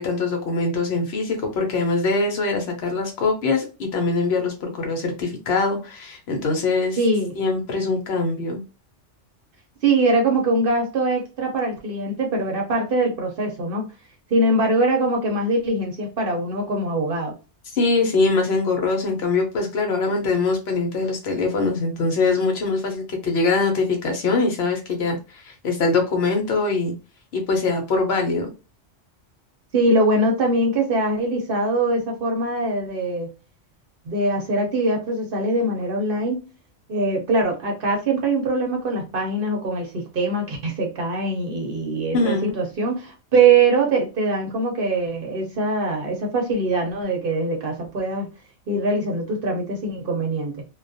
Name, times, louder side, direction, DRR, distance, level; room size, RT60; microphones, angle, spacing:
voice 1, 0.0-7.0 7.4-8.6 17.8-26.9 27.3-28.5 42.1-42.6, left 3 dB, 65° left, 3 dB, 0.9 m, -23 dB
voice 2, 7.0-7.3 9.8-13.9 14.3-17.3 29.7-33.3 34.0-36.4 36.9-48.3 48.7-50.6, right 2 dB, 55° right, 1 dB, 0.8 m, -22 dB
2.3 x 2.2 x 2.6 m, 0.31 s
omnidirectional pair, 1.2 m